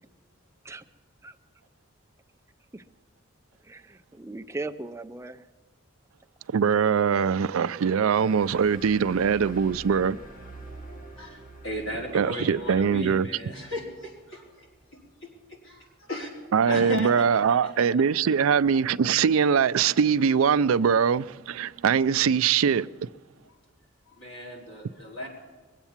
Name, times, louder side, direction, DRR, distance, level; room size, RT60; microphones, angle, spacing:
voice 1, 3.6-5.5, right 2 dB, 15° right, 0.5 m, -38 dB
voice 2, 6.5-10.2 12.1-13.3 16.5-22.9, right 6 dB, 85° right, 0.4 m, -22 dB
sound 1, 7.9-15.0, right 2 dB, 40° left, 1.6 m, -47 dB
voice 3, 11.2-14.7 14.9-16.3 16.6-17.9 23.4-23.5 24.1-25.3, left 1 dB, 65° left, 4.7 m, -36 dB
22.5 x 8.1 x 7.3 m
head